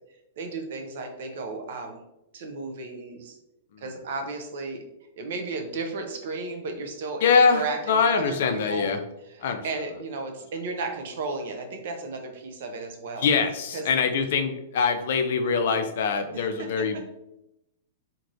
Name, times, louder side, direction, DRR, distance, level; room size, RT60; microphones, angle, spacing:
voice 1, 0.4-2.0 2.3-3.4 3.8-4.8 5.2-8.9 9.3-13.3 13.7-13.8 16.3-16.8, right 3 dB, 60° right, 4 dB, 0.5 m, -34 dB
voice 2, 7.2-9.0 9.4-9.6 13.2-17.1, left 5 dB, 60° left, 6 dB, 0.4 m, -23 dB
2.9 x 2.5 x 2.5 m, 0.87 s
hypercardioid pair, 110°, 0 cm